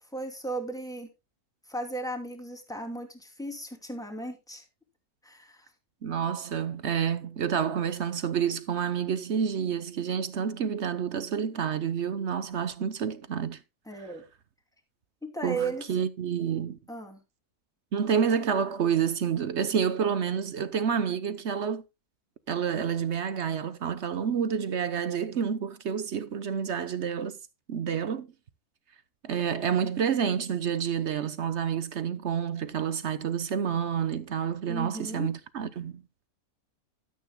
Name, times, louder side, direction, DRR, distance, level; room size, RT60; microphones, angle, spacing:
voice 1, 0.1-1.1 1.7-4.6 5.2-5.7 13.9-14.2 15.2-15.9 16.9-17.2 34.7-35.3, right 2 dB, ahead, 2.7 m, -35 dB
voice 2, 6.0-13.6 15.4-16.8 17.9-21.8 22.5-27.4 27.7-28.3 29.2-36.0, right 7 dB, 55° right, 1.0 m, -29 dB
13.0 x 12.5 x 2.2 m
omnidirectional pair, 1.6 m